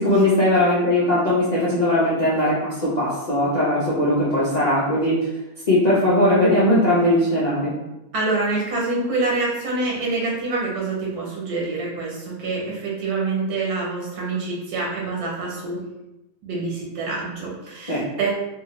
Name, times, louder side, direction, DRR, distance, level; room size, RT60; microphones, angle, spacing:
voice 1, 0.0-5.3 5.7-7.7 17.9-18.0, left 1 dB, 50° left, -9 dB, 0.5 m, -19 dB
voice 2, 8.1-15.8 16.4-18.3, right 3 dB, 90° right, -4 dB, 1.4 m, -26 dB
2.6 x 2.6 x 2.9 m, 0.94 s
omnidirectional pair, 1.5 m